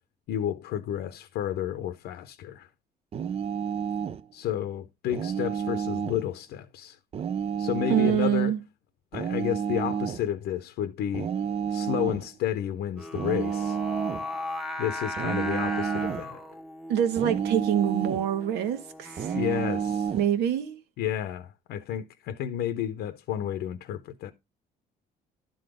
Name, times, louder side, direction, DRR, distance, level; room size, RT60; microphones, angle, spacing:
voice 1, 0.3-2.7 4.3-7.0 7.6-8.5 9.1-11.3 11.7-13.8 14.8-16.4 19.3-20.1 21.0-24.3, left 11 dB, 75° left, 0.8 m, -31 dB
sound 1, 3.1-4.2 5.1-6.2 7.1-8.3 9.1-10.2 11.1-12.3 13.1-14.3 15.2-16.3 17.2-18.3 19.2-20.3, right 7 dB, 35° right, 0.5 m, -30 dB
voice 2, 7.9-8.6 16.9-19.3 20.1-20.8, right 10 dB, 80° right, 1.5 m, -25 dB
Singing, 13.0-20.1, left 1 dB, ahead, 1.0 m, -38 dB
11.5 x 3.9 x 4.9 m
cardioid pair, 110°, 17 cm